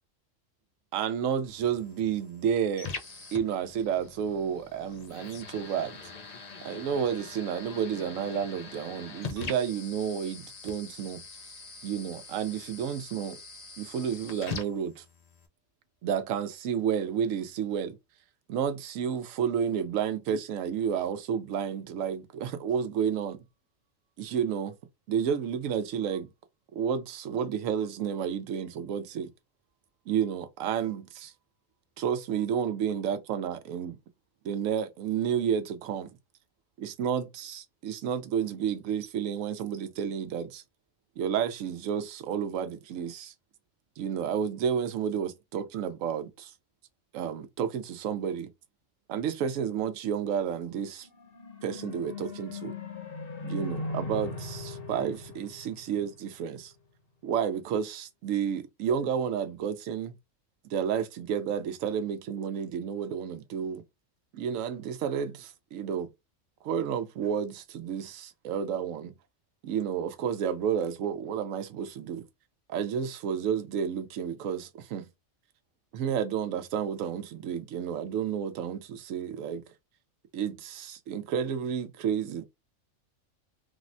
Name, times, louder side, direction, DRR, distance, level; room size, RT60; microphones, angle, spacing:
voice 1, 0.9-2.9 3.3-6.0 6.6-11.2 11.8-13.4 13.8-15.0 16.0-18.0 18.5-23.4 24.2-24.8 25.1-26.3 26.7-29.3 30.1-31.3 32.0-34.0 34.4-36.1 36.8-40.6 41.2-43.3 44.0-46.5 47.1-48.5 49.1-51.1 51.6-52.7 53.4-56.7 57.2-60.1 60.7-63.8 64.3-66.1 66.6-69.1 69.6-72.2 72.7-75.1 75.9-79.6 80.3-82.4, right 8 dB, 85° right, 1.0 m, -31 dB
sound 1, 1.5-15.5, left 5 dB, 65° left, 0.4 m, -43 dB
sound 2, 51.0-56.5, left 3 dB, 45° left, 1.2 m, -39 dB
3.4 x 2.1 x 2.5 m
omnidirectional pair, 1.3 m